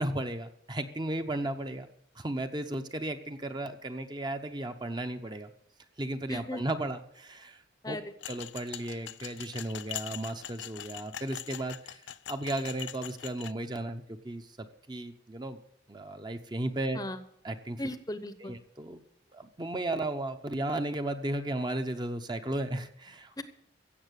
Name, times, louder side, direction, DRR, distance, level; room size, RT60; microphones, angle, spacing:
voice 1, 0.0-1.9 2.2-5.5 6.0-8.0 8.3-12.0 12.3-15.6 15.9-17.0 17.4-17.8 18.4-19.0 19.3-23.3, right 1 dB, 25° right, 7 dB, 0.8 m, -35 dB
voice 2, 6.3-6.6 7.8-8.1 16.9-17.2 17.8-18.5 23.4-23.5, left 1 dB, 20° left, 11 dB, 0.8 m, -37 dB
sound 1, 8.2-13.5, left 12 dB, 75° left, 0.5 m, -42 dB
16.0 x 7.3 x 8.2 m, 0.70 s
head